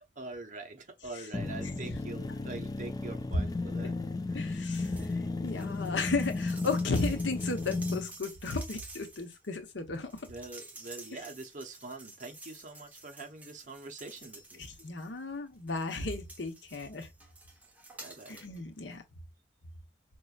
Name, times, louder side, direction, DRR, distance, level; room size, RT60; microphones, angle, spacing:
voice 1, 0.2-3.9 4.3-4.6 10.2-14.7 18.0-18.4, right 3 dB, 45° right, 0.9 m, -44 dB
sound 1, 1.3-8.1, left 3 dB, 20° left, 0.3 m, -34 dB
voice 2, 4.3-5.1 5.4-10.3 14.8-17.1 18.3-19.0, left 3 dB, 80° left, 1.0 m, -34 dB
sound 2, 4.7-5.1 5.4-15.2 15.7-18.6 18.9-19.0, right 2 dB, 10° right, 1.0 m, -51 dB
5.4 x 3.0 x 2.4 m
head